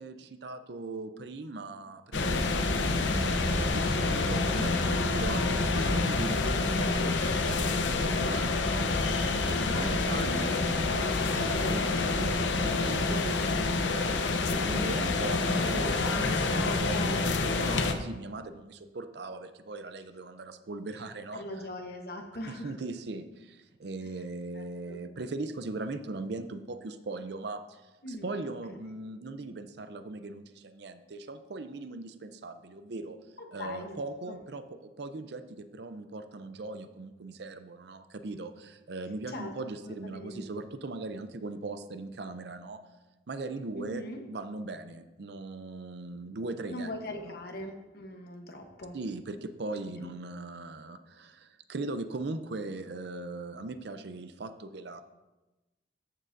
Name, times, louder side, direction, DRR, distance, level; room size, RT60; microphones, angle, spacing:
voice 1, 0.0-2.5 2.8-9.1 9.3-13.4 13.9-21.7 22.5-27.8 28.1-33.2 33.5-42.8 43.3-46.9 47.2-47.3 48.9-55.0, right 2 dB, 60° right, 10 dB, 0.5 m, -39 dB
sound 1, 2.1-17.9, left 3 dB, 75° left, 0.7 m, -27 dB
voice 2, 4.8-5.4 9.6-9.9 16.5-17.5 21.3-22.7 24.0-24.1 24.5-25.0 28.0-28.8 33.4-34.4 39.3-39.5 39.8-40.4 43.8-44.2 46.7-49.0 50.0-50.1, left 1 dB, 55° left, 4 dB, 1.0 m, -41 dB
13.5 x 6.6 x 2.6 m, 1.1 s
head